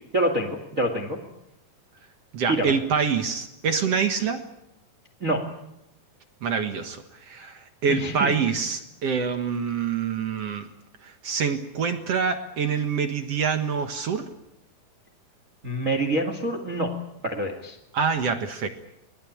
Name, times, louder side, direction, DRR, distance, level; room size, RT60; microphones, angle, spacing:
voice 1, 0.1-1.2 2.5-2.7 5.2-5.5 7.9-8.3 15.6-16.9 17.2-17.8, right 1 dB, 25° right, 4 dB, 1.8 m, -26 dB
voice 2, 2.3-4.4 6.4-10.7 11.0-14.3 17.9-18.7, right 6 dB, 55° right, 7 dB, 1.8 m, -26 dB
24.0 x 20.0 x 8.6 m, 0.84 s
omnidirectional pair, 4.5 m